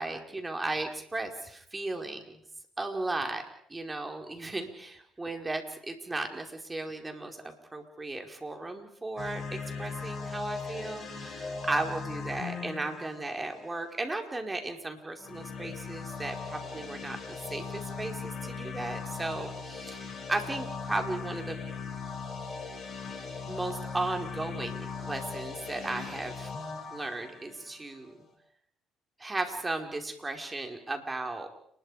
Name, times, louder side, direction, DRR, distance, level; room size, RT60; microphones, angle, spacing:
voice 1, 0.0-2.4 2.8-3.4 3.7-21.6 23.5-26.5 26.9-28.1 29.2-31.5, right 2 dB, 20° right, 4 dB, 5.1 m, -35 dB
sound 1, 9.2-14.0 15.2-28.2, left 5 dB, 40° left, 6.6 m, -39 dB
30.0 x 21.5 x 5.2 m, 0.66 s
supercardioid pair, 65°, 0 cm